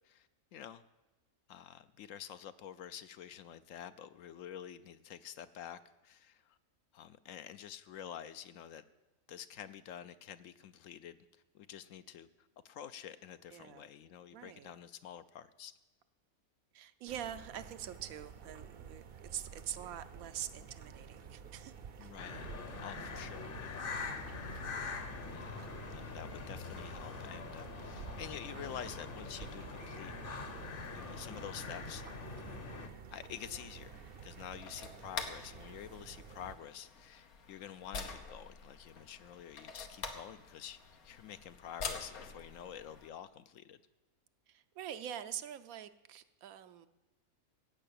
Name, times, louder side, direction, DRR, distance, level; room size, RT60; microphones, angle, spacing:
voice 1, 0.0-0.8 1.5-6.6 6.9-8.8 9.3-11.2 11.5-12.3 12.6-15.7 22.0-22.5 22.8-23.9 25.3-25.6 25.9-30.1 30.6-32.0 33.1-43.8, left 9 dB, 70° left, 12 dB, 0.9 m, -48 dB
voice 2, 13.5-13.9 14.3-14.7 16.7-21.7 32.4-32.6 44.5-46.9, right 10 dB, 80° right, 11 dB, 1.1 m, -45 dB
sound 1, 17.1-36.6, right 6 dB, 50° right, 0.7 m, -51 dB
sound 2, 22.2-32.9, left 4 dB, 45° left, 1.0 m, -44 dB
sound 3, 33.8-43.1, left 5 dB, 90° left, 1.6 m, -46 dB
15.5 x 5.5 x 8.6 m, 1.1 s
omnidirectional pair, 1.5 m